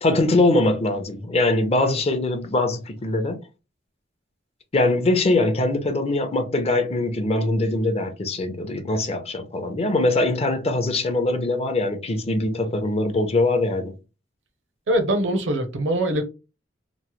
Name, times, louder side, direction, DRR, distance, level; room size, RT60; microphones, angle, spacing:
voice 1, 0.0-3.4 4.7-14.0, left 2 dB, 35° left, 0.6 m, -22 dB
voice 2, 14.9-16.2, right 1 dB, 75° right, 0.7 m, -23 dB
3.0 x 2.0 x 2.9 m
head